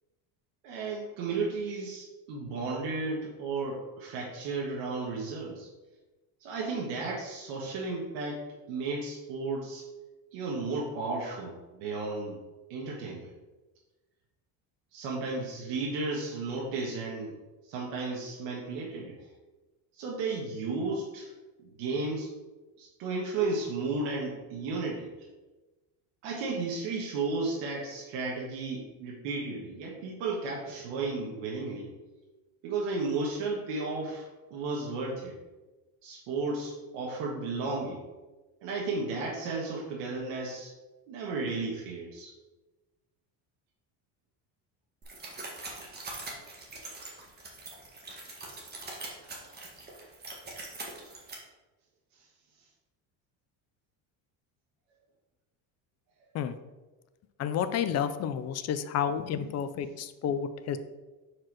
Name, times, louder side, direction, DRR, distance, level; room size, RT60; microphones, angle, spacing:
voice 1, 0.6-5.7 6.4-9.9 10.3-12.4 12.7-13.3 14.9-17.3 17.6-19.2 19.9-21.3 21.6-22.3 22.8-25.1 26.2-31.9 32.6-35.4 36.0-38.0 38.6-40.7 41.1-42.3 52.1-52.3, right 3 dB, 85° right, -3 dB, 1.5 m, -34 dB
sound 1, 45.0-51.3, right 2 dB, 25° right, 1.6 m, -43 dB
voice 2, 57.4-60.8, left 8 dB, 40° left, 11 dB, 0.5 m, -30 dB
4.8 x 4.6 x 5.9 m, 1.2 s
cardioid pair, 135°, 42 cm